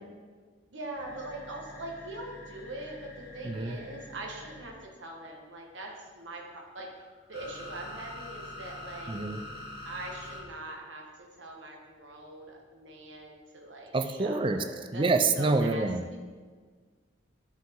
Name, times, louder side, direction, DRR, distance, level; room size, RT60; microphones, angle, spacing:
voice 1, 0.7-9.4 9.8-15.0 15.4-16.2, right 2 dB, 70° right, 0 dB, 1.5 m, -42 dB
sound 1, 1.0-4.7 6.2-10.4, left 1 dB, 55° left, 2.2 m, -45 dB
voice 2, 3.4-3.8 9.1-9.4 13.9-14.6 14.9-16.1, right 3 dB, 25° right, 8 dB, 0.4 m, -27 dB
9.7 x 5.8 x 3.8 m, 1.5 s
head